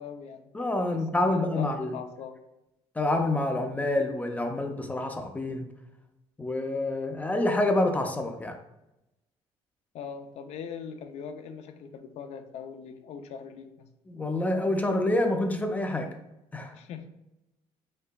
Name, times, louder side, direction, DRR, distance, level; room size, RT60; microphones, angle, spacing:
voice 1, 0.0-0.5 0.9-1.0 1.3-1.7 1.9-2.4 9.9-13.9 16.7-17.1, left 7 dB, 65° left, 7 dB, 0.5 m, -41 dB
voice 2, 0.5-2.0 3.0-5.7 6.4-8.6 14.1-16.1 16.5-16.7, left 1 dB, 15° left, 5 dB, 0.4 m, -27 dB
5.3 x 3.7 x 2.3 m, 0.91 s
cardioid pair, 125°, 12 cm